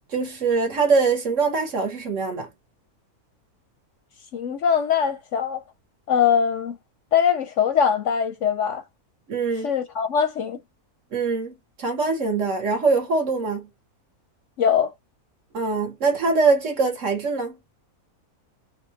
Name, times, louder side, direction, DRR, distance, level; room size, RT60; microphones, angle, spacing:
voice 1, 0.1-2.5 9.3-9.7 11.1-13.7 15.5-17.6, right 4 dB, 55° right, 1.6 m, -23 dB
voice 2, 4.3-5.6 6.1-6.8 7.1-8.8 9.6-10.6 14.6-14.9, left 7 dB, 65° left, 0.8 m, -22 dB
3.6 x 2.4 x 2.7 m
omnidirectional pair, 1.6 m